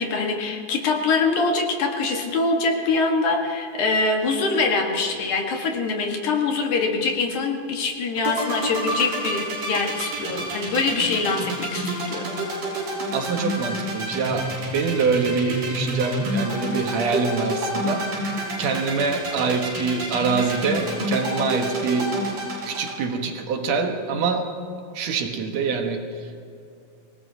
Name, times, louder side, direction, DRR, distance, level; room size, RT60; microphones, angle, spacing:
voice 1, 0.0-12.3, left 3 dB, 65° left, 2 dB, 2.8 m, -24 dB
sound 1, 8.2-22.9, right 2 dB, 90° right, 6.6 m, -28 dB
voice 2, 13.1-18.1 18.6-22.2 22.7-24.5 24.9-26.4, right 4 dB, 60° right, 4 dB, 2.1 m, -25 dB
27.0 x 18.5 x 2.8 m, 2.6 s
omnidirectional pair, 4.0 m